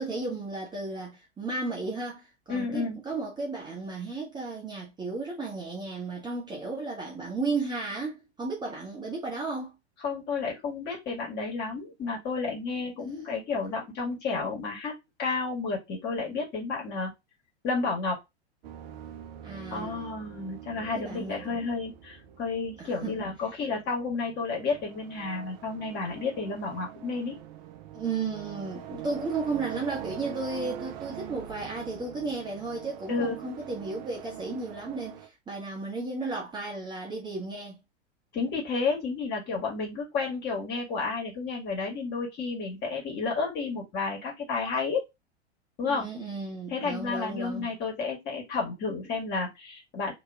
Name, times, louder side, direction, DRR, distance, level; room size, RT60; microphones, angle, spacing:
voice 1, 0.0-9.8 19.4-20.1 20.9-21.6 22.8-23.3 27.9-37.8 45.9-47.7, right 3 dB, 15° right, 1.0 m, -34 dB
voice 2, 2.5-3.0 10.0-14.9 15.2-17.1 17.6-18.2 19.7-27.4 28.9-29.0 33.1-33.4 38.3-45.0 45.8-46.1 46.7-50.1, left 4 dB, 30° left, 1.7 m, -31 dB
sound 1, 18.6-35.3, right 11 dB, 40° right, 0.6 m, -44 dB
2.9 x 2.9 x 3.6 m
figure-of-eight pair, 90°, 33 cm